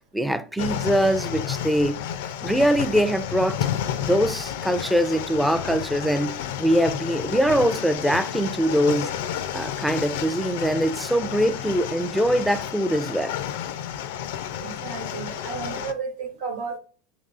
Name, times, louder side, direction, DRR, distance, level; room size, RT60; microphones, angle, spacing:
voice 1, 0.1-2.0 2.4-3.6 4.0-9.1 9.5-13.3, equal, 5° right, 0.4 m, -23 dB
sound 1, 0.6-15.9, left 10 dB, 80° left, 0.4 m, -31 dB
voice 2, 14.6-16.8, right 5 dB, 75° right, 1.1 m, -33 dB
5.4 x 3.0 x 2.4 m
supercardioid pair, 120°, 0 cm